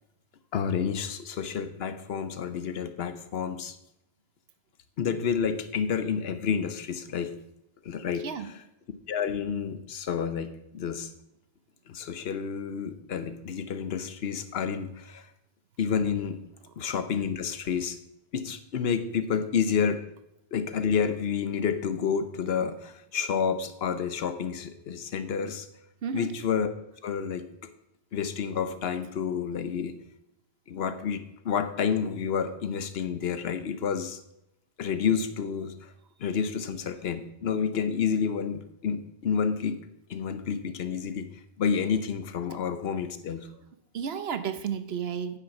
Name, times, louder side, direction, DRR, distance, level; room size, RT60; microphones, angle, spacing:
voice 1, 0.5-3.8 5.0-7.3 7.8-8.5 9.1-11.1 11.9-15.2 15.8-16.4 16.8-18.0 18.3-20.0 20.5-25.7 26.1-26.7 27.0-27.4 28.1-29.9 30.7-34.2 34.8-35.9 36.2-39.8 40.1-41.3 41.6-43.5, left 7 dB, 65° left, 10 dB, 1.0 m, -29 dB
voice 2, 26.0-26.3 43.9-45.4, right 7 dB, 65° right, 11 dB, 1.0 m, -32 dB
9.8 x 5.9 x 5.9 m, 0.82 s
omnidirectional pair, 1.1 m